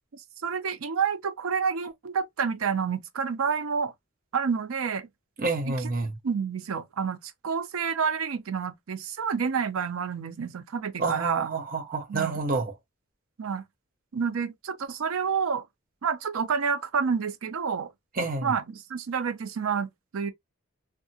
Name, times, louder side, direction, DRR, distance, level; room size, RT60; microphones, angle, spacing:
voice 1, 0.1-3.9 4.3-5.1 6.2-11.5 12.1-12.4 13.4-13.6 14.1-15.6 16.0-17.9 18.4-20.3, right 6 dB, 90° right, 0.5 m, -29 dB
voice 2, 5.4-6.1 11.0-12.8 18.1-18.5, right 3 dB, 45° right, 0.7 m, -29 dB
2.7 x 2.3 x 2.7 m
head